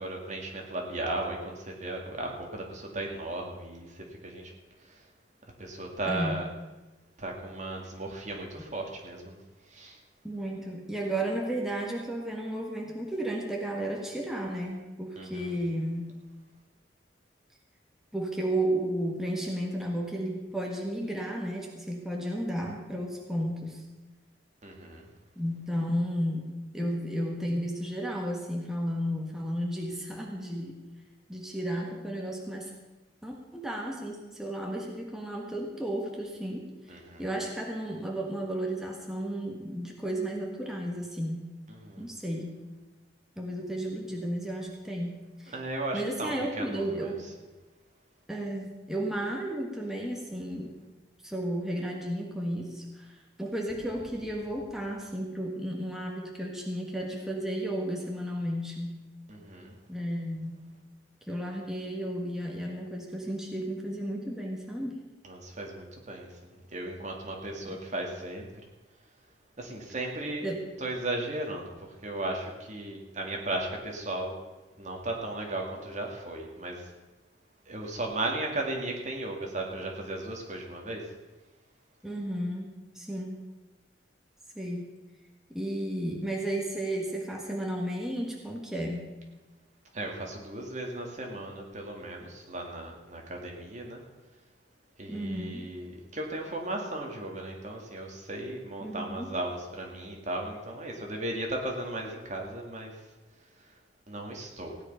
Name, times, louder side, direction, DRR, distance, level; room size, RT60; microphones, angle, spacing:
voice 1, 0.0-4.5 4.9-5.0 5.6-6.4 7.2-9.4 9.7-10.0 15.2-15.6 24.6-25.1 36.9-37.3 41.7-42.1 45.5-47.1 59.3-59.7 65.2-68.5 69.6-70.5 70.8-74.4 74.8-76.9 77.7-81.1 89.9-94.0 95.0-103.0 104.1-104.7, right 2 dB, 40° right, 1 dB, 2.3 m, -36 dB
voice 2, 6.0-6.4 10.2-16.1 18.1-23.8 25.3-30.8 31.3-32.7 33.2-41.4 42.0-42.5 43.4-45.1 45.4-45.6 45.9-47.2 48.3-50.7 51.2-59.0 59.9-60.7 61.3-65.0 67.6-67.8 70.4-70.7 82.0-82.7 82.9-83.4 84.5-84.9 85.5-89.1 95.1-95.7 98.8-99.3, right 1 dB, 5° right, -1 dB, 1.6 m, -33 dB
16.5 x 9.7 x 5.6 m, 1.1 s
head